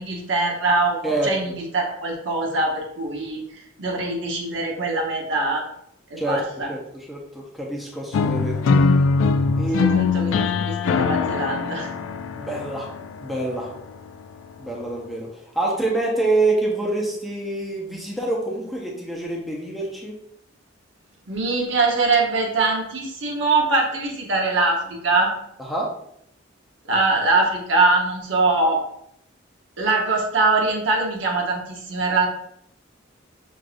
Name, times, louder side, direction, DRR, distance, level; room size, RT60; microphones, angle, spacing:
voice 1, 0.0-3.4 3.8-5.6 6.1-6.7 9.8-11.9 21.3-25.3 26.8-28.8 29.8-32.3, right 3 dB, 75° right, 0 dB, 0.9 m, -22 dB
voice 2, 1.0-1.5 6.2-8.8 9.5-10.0 12.4-12.9 13.2-13.7 14.6-20.1 25.7-25.9, right 2 dB, ahead, -3 dB, 0.7 m, -26 dB
sound 1, 8.1-14.1, left 4 dB, 85° left, 0.3 m, -22 dB
6.1 x 2.6 x 2.5 m, 0.73 s
head